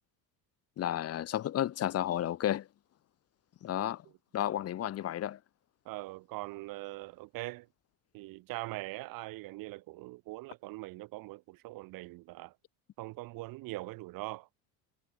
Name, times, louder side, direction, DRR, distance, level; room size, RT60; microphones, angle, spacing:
voice 1, 0.8-2.7 3.6-4.0 4.3-5.4, left 12 dB, 35° left, 0.9 m, -32 dB
voice 2, 5.8-7.7 8.1-12.5 13.0-14.5, right 20 dB, 55° right, 0.7 m, -42 dB
supercardioid pair, 105°, 41 cm